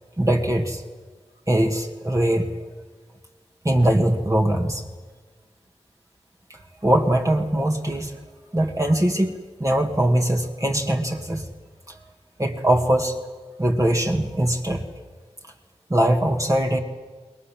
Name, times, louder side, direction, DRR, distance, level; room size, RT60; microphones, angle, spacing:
voice 1, 0.2-0.8 1.5-2.5 3.6-4.9 6.5-8.2 8.5-11.5 11.9-12.0 12.4-13.2 13.6-14.9 15.9-16.8, right 1 dB, 30° right, 2 dB, 2.2 m, -21 dB
29.0 x 21.5 x 7.5 m, 1.4 s
wide cardioid pair, 70°, 12 cm